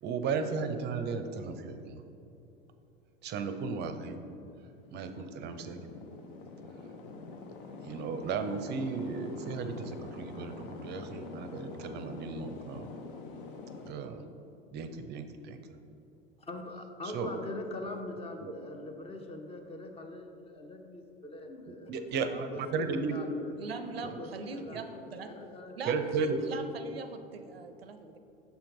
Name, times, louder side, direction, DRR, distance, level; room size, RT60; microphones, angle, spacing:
voice 1, 0.0-2.0 3.2-4.2 4.9-5.9 7.8-12.9 13.8-14.3 14.7-15.6 17.1-17.3 18.4-18.5 21.7-23.2 24.7-24.8 25.8-26.4, right 5 dB, 35° right, 8 dB, 0.5 m, -35 dB
sound 1, 4.5-13.9, left 4 dB, 60° left, 0.7 m, -46 dB
voice 2, 16.4-23.5 24.0-26.3, left 2 dB, 20° left, 4 dB, 0.6 m, -43 dB
voice 3, 23.6-25.3 25.8-28.2, right 4 dB, 85° right, 8 dB, 0.5 m, -41 dB
6.9 x 4.5 x 3.8 m, 2.8 s
figure-of-eight pair, 75°, 29 cm